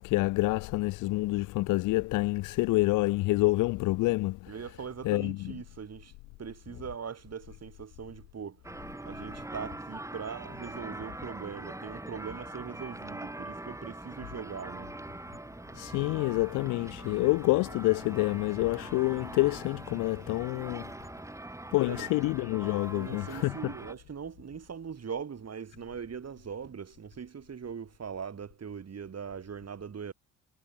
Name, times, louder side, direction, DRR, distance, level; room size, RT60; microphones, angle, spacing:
voice 1, 0.0-4.5 5.0-5.5 15.7-20.9 21.7-23.7, left 20 dB, 55° left, 0.5 m, -27 dB
voice 2, 4.5-6.1 6.4-8.6 9.0-15.0 21.9-22.1 22.9-30.1, right 7 dB, 40° right, 4.8 m, -41 dB
sound 1, 8.6-23.9, right 1 dB, 10° right, 1.9 m, -43 dB
hypercardioid pair, 50°, 37 cm